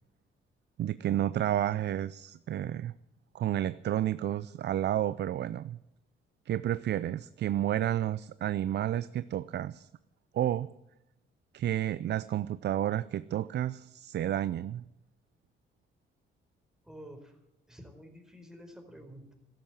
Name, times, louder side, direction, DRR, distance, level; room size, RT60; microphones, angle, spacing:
voice 1, 0.8-2.9 3.3-5.8 6.5-9.9 10.3-10.7 11.5-14.8, right 12 dB, 60° right, 16 dB, 0.5 m, -31 dB
voice 2, 16.8-17.4 17.7-19.3, equal, 5° right, 4 dB, 4.5 m, -49 dB
14.0 x 11.5 x 7.7 m, 0.89 s
cardioid pair, 90°, 20 cm